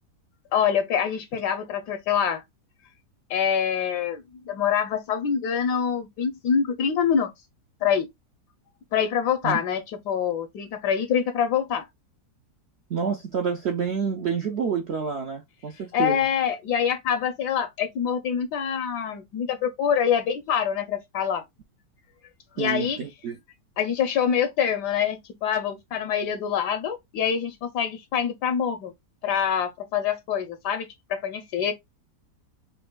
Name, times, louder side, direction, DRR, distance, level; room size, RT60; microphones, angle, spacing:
voice 1, 0.5-2.4 3.3-7.3 7.8-8.1 8.9-11.9 15.9-21.4 22.6-23.0 23.8-28.9 29.2-31.7, left 8 dB, 80° left, 1.2 m, -25 dB
voice 2, 12.9-16.2 22.6-23.4, right 6 dB, 75° right, 0.6 m, -28 dB
5.3 x 2.5 x 2.2 m
omnidirectional pair, 1.8 m